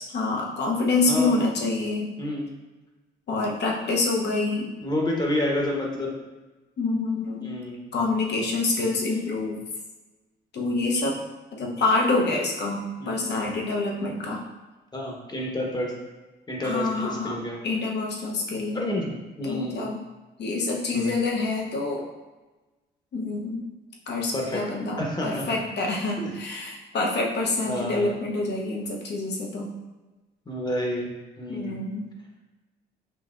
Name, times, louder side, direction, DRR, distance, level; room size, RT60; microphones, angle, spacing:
voice 1, 0.0-2.1 3.3-4.7 6.8-7.5 7.9-9.6 10.5-11.2 11.6-14.4 16.6-17.4 17.6-18.8 19.4-20.0 20.4-22.0 23.1-23.6 24.1-29.7 31.5-32.1, left 3 dB, 60° left, -1 dB, 0.9 m, -26 dB
voice 2, 4.8-6.1 7.4-7.9 13.0-13.4 14.9-15.9 16.5-17.6 18.7-19.9 20.9-21.2 24.3-24.6 25.0-25.5 26.2-26.3 27.7-28.1 30.5-31.1 31.4-31.8, left 1 dB, 20° left, -1 dB, 1.0 m, -29 dB
5.4 x 2.8 x 2.5 m, 1.2 s
cardioid pair, 90°, 20 cm